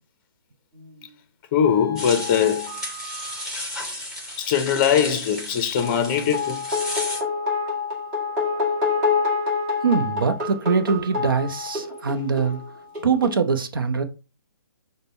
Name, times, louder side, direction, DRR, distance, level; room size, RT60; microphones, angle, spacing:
sound 1, 0.8-0.9 1.6-3.4 5.8-13.3, left 4 dB, 30° right, 1.5 m, -27 dB
voice 1, 1.5-2.7 4.4-6.6, left 8 dB, 30° left, 0.6 m, -21 dB
sound 2, 2.0-7.2, left 1 dB, 5° right, 1.0 m, -33 dB
voice 2, 9.8-12.6 13.0-14.0, right 5 dB, 65° right, 0.7 m, -22 dB
5.1 x 2.2 x 4.2 m
figure-of-eight pair, 130°, 12 cm